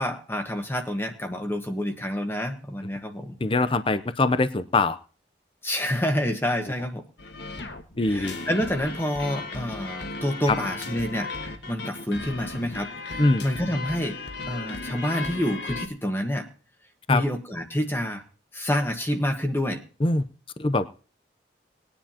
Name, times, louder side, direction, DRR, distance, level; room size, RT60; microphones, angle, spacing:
voice 1, 0.0-3.4 5.6-7.1 8.0-14.2 14.4-16.5 17.1-18.2 18.5-19.8, left 1 dB, 15° left, 5 dB, 1.4 m, -28 dB
voice 2, 3.4-5.0 8.0-8.3 10.5-10.6 13.2-13.5 17.1-17.2 20.0-20.3 20.6-20.9, left 2 dB, 30° left, 13 dB, 0.6 m, -22 dB
sound 1, 7.2-15.9, left 3 dB, 70° left, 1.6 m, -36 dB
20.5 x 10.0 x 2.9 m, 0.37 s
head